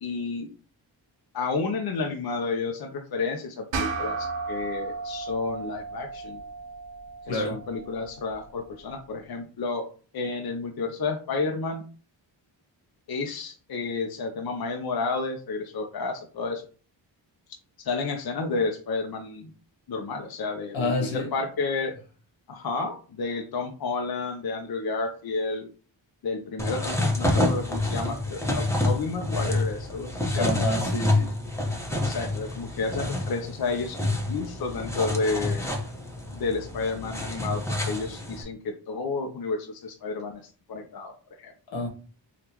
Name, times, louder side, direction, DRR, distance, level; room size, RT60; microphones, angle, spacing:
voice 1, 0.0-0.5 1.3-6.4 7.2-9.9 10.1-11.8 13.1-16.7 17.8-19.5 19.9-21.9 22.5-25.7 26.2-30.5 32.0-35.7 36.3-40.4 40.7-41.1 41.4-41.5, left 4 dB, 55° left, 0.6 m, -31 dB
sound 1, 3.7-8.5, right 4 dB, 80° right, 0.7 m, -34 dB
voice 2, 7.3-7.6 20.7-21.3 30.4-31.3 41.7-41.9, left 2 dB, 80° left, 1.2 m, -28 dB
sound 2, 26.6-38.4, left 2 dB, 5° left, 1.0 m, -28 dB
3.5 x 2.4 x 2.9 m
cardioid pair, 50°, 45 cm